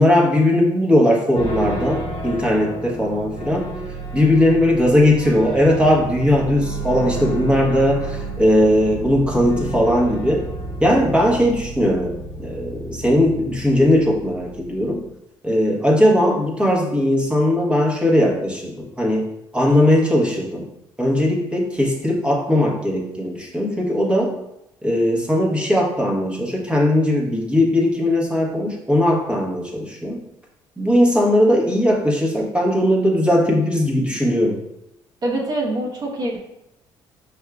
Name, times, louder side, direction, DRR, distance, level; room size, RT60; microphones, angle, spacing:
voice 1, 0.0-3.7 4.1-10.4 10.8-15.0 15.4-19.3 19.5-20.6 21.0-24.4 24.8-30.2 30.8-34.6, left 1 dB, 10° right, -2 dB, 1.2 m, -18 dB
sound 1, 1.3-15.1, right 2 dB, 85° left, 1.0 m, -31 dB
voice 2, 35.2-36.4, right 1 dB, 40° right, -2 dB, 1.1 m, -24 dB
5.3 x 3.4 x 2.4 m, 0.85 s
supercardioid pair, 80°, 10 cm